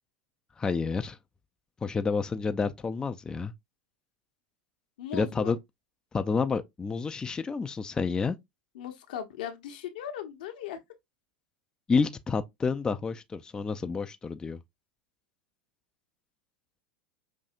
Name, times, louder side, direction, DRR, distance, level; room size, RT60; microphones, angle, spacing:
voice 1, 0.6-1.2 1.8-3.5 5.1-5.6 6.1-8.4 11.9-14.6, left 4 dB, 15° left, 0.4 m, -29 dB
voice 2, 5.0-5.6 8.7-10.8, left 9 dB, 70° left, 0.8 m, -38 dB
5.4 x 2.7 x 2.5 m
hypercardioid pair, 90°, 5 cm